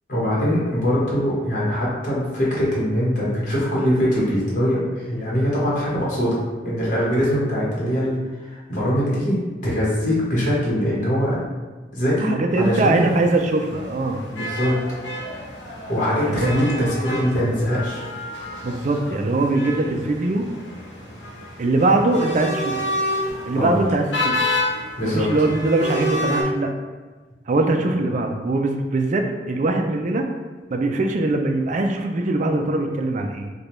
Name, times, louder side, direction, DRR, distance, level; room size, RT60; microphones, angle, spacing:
voice 1, 0.1-8.1 8.4-9.4 9.6-11.4 11.9-13.1 14.3-14.8 15.9-18.0 23.5-23.7 25.0-25.3 27.9-28.0, equal, 45° left, -6 dB, 1.2 m, -22 dB
voice 2, 12.2-14.2 16.2-16.5 18.6-20.4 21.6-22.8 23.4-24.5 25.0-26.7 27.5-30.3 30.7-33.5, right 2 dB, 40° right, 4 dB, 0.4 m, -22 dB
sound 1, 12.5-26.4, left 1 dB, 75° left, 0.9 m, -30 dB
4.9 x 2.3 x 3.0 m, 1.3 s
head